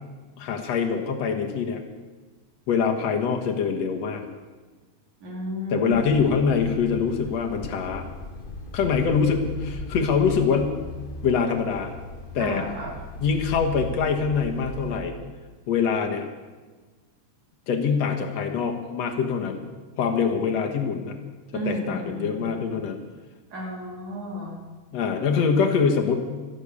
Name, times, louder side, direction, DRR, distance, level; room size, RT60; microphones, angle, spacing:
voice 1, 0.4-1.8 2.7-4.2 5.7-8.1 8.7-10.7 11.2-11.9 12.3-12.6 13.2-15.1 15.7-16.3 17.7-19.6 20.0-21.2 21.6-23.0 24.9-26.2, left 6 dB, 65° left, 4 dB, 2.5 m, -24 dB
voice 2, 5.2-6.1 12.4-12.9 21.5-22.7 23.5-24.6, equal, 80° right, -3 dB, 5.0 m, -32 dB
sound 1, 5.9-14.9, left 1 dB, 45° left, 0.6 m, -38 dB
13.5 x 11.5 x 8.4 m, 1.3 s
omnidirectional pair, 3.3 m